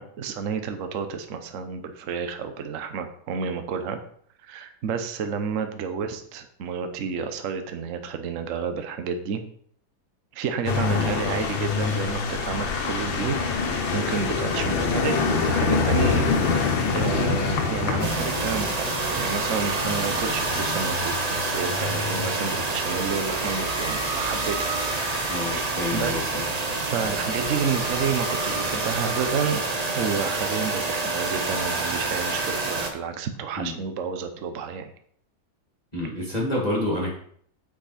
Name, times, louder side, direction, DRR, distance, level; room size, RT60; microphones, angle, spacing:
voice 1, 0.0-4.0 4.4-9.4 10.3-26.1 26.8-29.6 29.9-34.9, right 6 dB, 55° right, 7 dB, 1.0 m, -30 dB
sound 1, 10.6-29.1, left 5 dB, 75° left, 1.9 m, -28 dB
sound 2, 18.0-32.9, right 3 dB, 35° right, 0.6 m, -27 dB
voice 2, 25.3-26.4 33.6-33.8 35.9-37.1, left 1 dB, 20° left, -4 dB, 2.0 m, -28 dB
8.8 x 5.3 x 4.2 m, 0.62 s
omnidirectional pair, 2.1 m